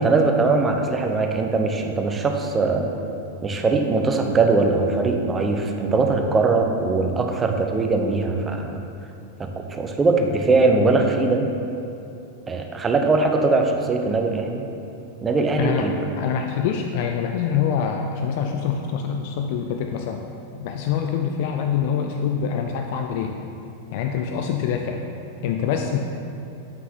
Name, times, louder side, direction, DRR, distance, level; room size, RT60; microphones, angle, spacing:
voice 1, 0.0-2.9 3.4-8.7 9.4-11.4 12.5-14.7 15.2-15.9, right 3 dB, 15° right, 3 dB, 0.6 m, -21 dB
voice 2, 16.2-20.2 20.6-23.3 23.9-25.0 25.4-26.0, left 7 dB, 50° left, 4 dB, 0.3 m, -25 dB
8.0 x 5.6 x 2.8 m, 2.7 s
figure-of-eight pair, 90°, 0 cm